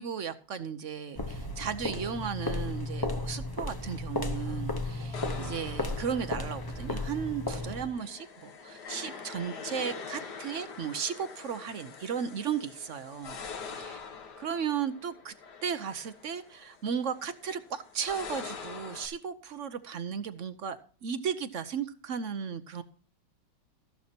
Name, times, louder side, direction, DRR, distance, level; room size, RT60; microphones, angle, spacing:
voice 1, 0.0-13.4 13.8-14.0 14.4-15.3 15.6-22.8, right 7 dB, 55° right, 12 dB, 0.9 m, -35 dB
sound 1, 1.1-8.0, left 2 dB, 35° left, 0.3 m, -34 dB
sound 2, 5.1-19.1, left 5 dB, 65° left, 1.9 m, -45 dB
14.0 x 11.5 x 2.8 m, 0.42 s
omnidirectional pair, 2.0 m